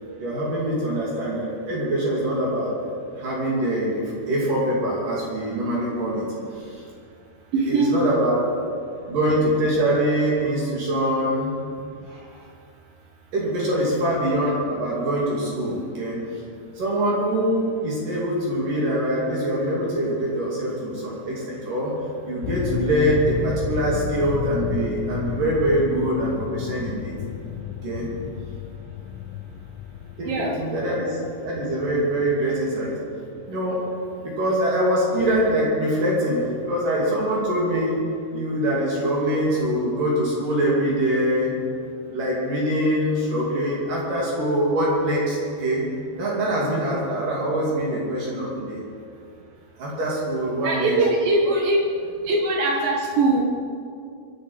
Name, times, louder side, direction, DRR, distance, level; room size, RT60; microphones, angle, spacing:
voice 1, 0.2-2.8 3.2-6.4 7.7-8.5 9.1-11.5 12.1-12.3 13.3-16.2 16.8-22.0 22.2-27.1 27.8-28.1 30.2-31.2 31.4-33.0 33.5-33.9 34.2-41.6 42.1-45.9 46.2-48.8 49.8-51.0, right 1 dB, 50° right, -5 dB, 4.0 m, -24 dB
voice 2, 7.5-8.1 30.2-30.6 50.6-51.8 52.2-53.4, right 2 dB, 65° right, 1 dB, 2.4 m, -21 dB
sound 1, 22.4-33.4, left 9 dB, 85° left, 2.6 m, -32 dB
23.5 x 11.5 x 4.9 m, 2.4 s
omnidirectional pair, 5.3 m